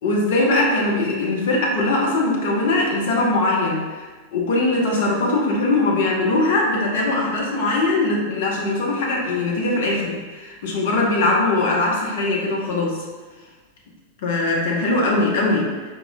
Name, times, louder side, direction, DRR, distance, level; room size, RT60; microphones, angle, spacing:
voice 1, 0.0-13.0 14.2-15.9, left 2 dB, 55° left, -3 dB, 1.0 m, -21 dB
4.6 x 3.7 x 2.3 m, 1.3 s
figure-of-eight pair, 90°, 0 cm